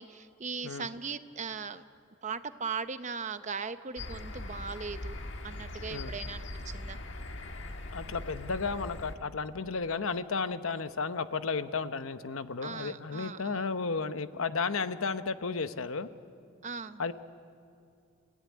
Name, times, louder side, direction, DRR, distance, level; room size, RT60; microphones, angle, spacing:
voice 1, 0.0-1.8 2.2-5.2 5.4-7.0 12.6-13.7 16.6-17.0, right 5 dB, 35° right, 11 dB, 0.7 m, -39 dB
sound 1, 4.0-9.1, left 2 dB, 60° left, 1.5 m, -41 dB
voice 2, 7.9-16.1 17.0-17.1, left 4 dB, 80° left, 11 dB, 0.9 m, -33 dB
29.0 x 16.5 x 9.6 m, 2.5 s
head